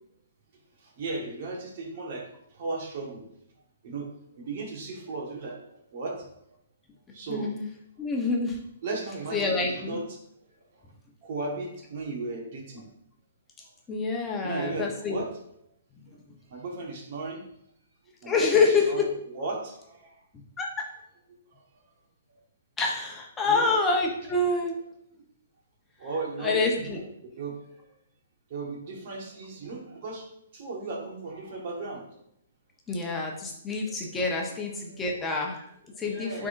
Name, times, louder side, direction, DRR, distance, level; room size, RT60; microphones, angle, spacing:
voice 1, 1.0-2.3 2.6-3.2 3.8-4.1 4.4-5.6 5.9-6.2 7.1-7.5 8.8-10.0 11.2-12.8 14.4-15.3 16.5-17.4 18.2-20.1 23.4-23.7 24.2-24.3 26.0-27.5 28.5-30.2 30.5-32.0 35.5-36.5, right 3 dB, 50° right, 0 dB, 1.6 m, -36 dB
voice 2, 7.3-7.6 8.0-8.6 9.3-10.0 13.9-15.2 18.3-19.1 20.6-20.9 22.8-24.7 26.4-27.0 32.9-35.5 36.0-36.5, left 3 dB, 15° left, -1 dB, 1.0 m, -26 dB
9.3 x 3.8 x 2.6 m, 0.74 s
hypercardioid pair, 130°, 0 cm